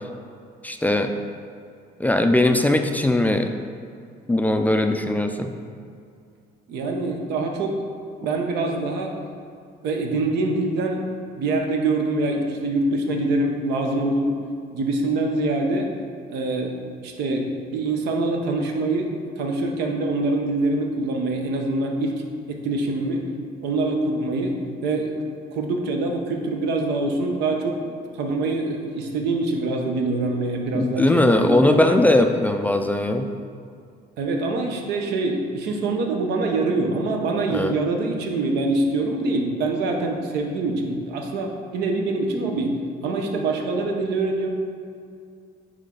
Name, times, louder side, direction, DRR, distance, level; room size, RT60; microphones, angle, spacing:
voice 1, 0.6-1.1 2.0-3.5 4.3-5.5 30.7-33.3 37.5-37.8, left 1 dB, 10° left, 5 dB, 0.3 m, -19 dB
voice 2, 6.7-7.8 8.2-9.2 9.8-14.3 14.7-15.9 16.3-22.1 22.5-23.2 23.6-25.1 25.5-27.7 28.1-32.0 33.3-33.4 34.2-42.8 43.0-44.5, right 2 dB, 80° right, 2 dB, 0.9 m, -24 dB
9.6 x 3.2 x 3.8 m, 2.3 s
cardioid pair, 110°, 17 cm